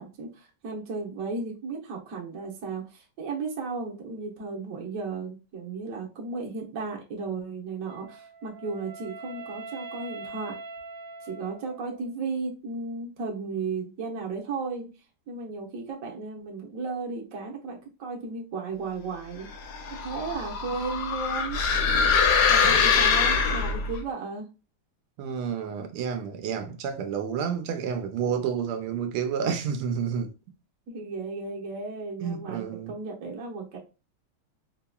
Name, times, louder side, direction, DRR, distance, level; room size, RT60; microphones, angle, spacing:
voice 1, 0.0-10.5 11.2-14.9 15.3-19.5 20.0-21.6 22.5-24.5 30.9-33.8, right 4 dB, 50° right, 1.1 m, -35 dB
Wind instrument woodwind instrument, 7.9-12.1, right 3 dB, 70° right, 1.1 m, -42 dB
sound 1, 19.5-24.0, left 6 dB, 70° left, 1.0 m, -23 dB
voice 2, 25.2-30.3 32.2-32.9, right 7 dB, 85° right, 1.5 m, -30 dB
4.2 x 2.9 x 2.3 m
omnidirectional pair, 2.3 m